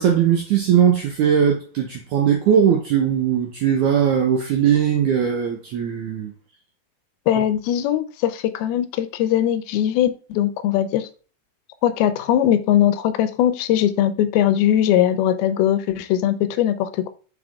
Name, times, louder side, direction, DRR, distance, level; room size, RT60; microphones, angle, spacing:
voice 1, 0.0-6.3, right 8 dB, 85° right, 1.7 m, -19 dB
voice 2, 7.3-11.1 11.8-17.1, left 11 dB, 85° left, 2.5 m, -20 dB
6.7 x 5.0 x 3.5 m
omnidirectional pair, 4.4 m